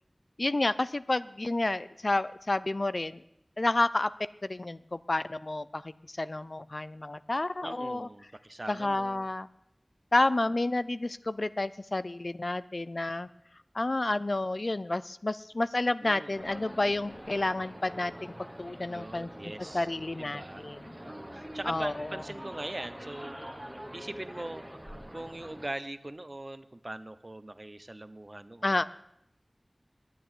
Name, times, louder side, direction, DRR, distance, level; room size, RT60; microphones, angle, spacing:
voice 1, 0.4-3.2 3.6-4.1 4.4-8.1 8.7-9.5 10.1-13.3 13.7-18.3 18.6-19.3 19.7-20.9 21.7-22.1 28.6-28.8, left 2 dB, 60° left, 15 dB, 0.5 m, -30 dB
voice 2, 7.6-9.3 16.0-16.5 18.9-19.9 20.2-23.4 23.9-24.7 25.1-28.8, right 1 dB, 40° right, 12 dB, 0.8 m, -41 dB
sound 1, 16.3-25.7, equal, 10° right, 1.1 m, -45 dB
10.0 x 9.3 x 9.6 m, 0.81 s
wide cardioid pair, 45°, 0 cm